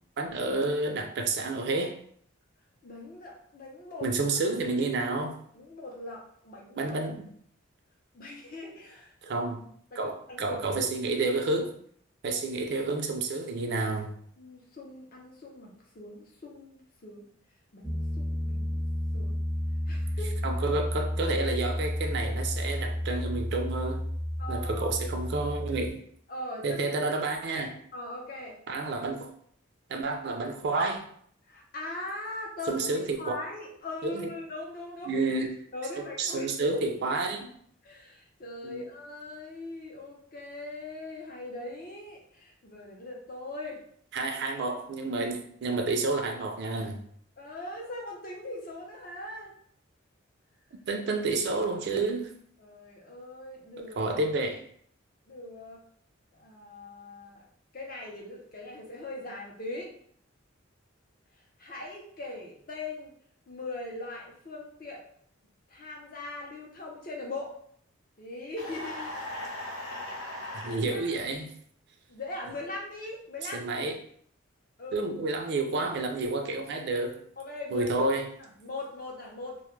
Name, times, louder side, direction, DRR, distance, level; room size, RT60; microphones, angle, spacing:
voice 1, 0.2-2.0 4.0-5.4 6.8-7.3 9.2-9.6 10.0-11.7 12.2-14.1 20.4-24.1 24.5-26.0 26.6-27.7 28.7-29.3 29.9-31.0 32.7-33.2 34.0-34.3 35.1-35.5 36.2-37.5 38.6-38.8 44.1-47.0 50.9-52.3 53.8-54.6 70.5-71.5 73.5-74.0 74.9-77.2 77.7-78.3, right 3 dB, 55° right, 4 dB, 0.3 m, -30 dB
voice 2, 2.8-4.1 5.5-7.0 8.1-9.4 9.9-10.8 14.4-17.2 17.7-18.8 19.1-19.4 19.9-20.4 24.4-24.9 26.3-27.0 27.9-28.6 31.5-35.1 35.7-36.8 37.8-43.8 47.4-49.5 52.6-54.1 55.3-55.8 56.3-57.5 57.7-59.9 61.6-63.1 63.5-65.0 65.7-67.6 68.2-69.2 70.6-71.1 72.1-73.7 74.8-75.0 77.4-77.9 78.4-79.6, left 2 dB, 45° left, -1 dB, 0.5 m, -40 dB
Piano, 17.8-25.9, equal, 5° left, 0.6 m, -31 dB
sound 1, 68.6-70.8, left 1 dB, 80° left, 0.7 m, -38 dB
2.2 x 2.0 x 3.0 m, 0.62 s
head